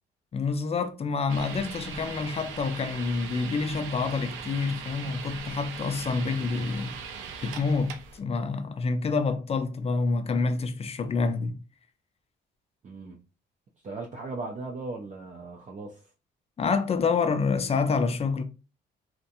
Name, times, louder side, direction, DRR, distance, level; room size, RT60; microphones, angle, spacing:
voice 1, 0.3-6.9 7.4-11.6 16.6-18.4, left 4 dB, 30° left, 0.4 m, -27 dB
sound 1, 1.3-8.2, right 6 dB, 90° right, 0.5 m, -40 dB
voice 2, 6.2-6.5 12.8-13.2 13.8-16.0, right 3 dB, 35° right, 0.5 m, -38 dB
2.5 x 2.1 x 2.7 m
cardioid pair, 90°, 20 cm